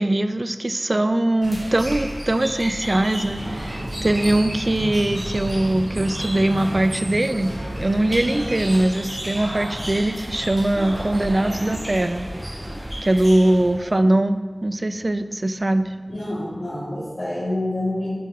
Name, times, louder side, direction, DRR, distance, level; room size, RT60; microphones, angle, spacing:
voice 1, 0.0-7.5 7.8-12.3 13.0-15.9, right 1 dB, 45° right, 11 dB, 0.3 m, -21 dB
sound 1, 1.4-13.9, equal, 30° right, 1.3 m, -32 dB
sound 2, 2.3-12.7 14.8-14.9 15.1-16.9, right 1 dB, 80° right, 0.7 m, -38 dB
voice 2, 16.1-18.1, left 1 dB, 85° left, -11 dB, 1.6 m, -27 dB
5.3 x 4.6 x 4.6 m, 1.4 s
wide cardioid pair, 45°, 0 cm